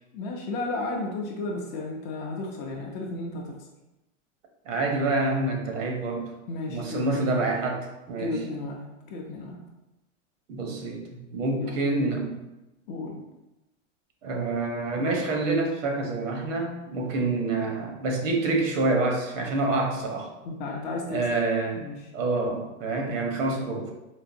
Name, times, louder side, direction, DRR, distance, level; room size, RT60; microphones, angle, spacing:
voice 1, 0.1-3.6 6.5-7.2 8.2-9.6 11.6-11.8 12.9-13.2 20.4-21.2 21.7-22.1, left 2 dB, 30° left, 0 dB, 0.4 m, -33 dB
voice 2, 4.7-6.3 6.7-8.4 10.5-11.0 11.3-12.4 14.2-20.3 21.1-21.8 22.1-23.9, right 2 dB, 80° right, 2 dB, 0.9 m, -27 dB
3.8 x 2.5 x 2.5 m, 0.98 s
supercardioid pair, 135°, 38 cm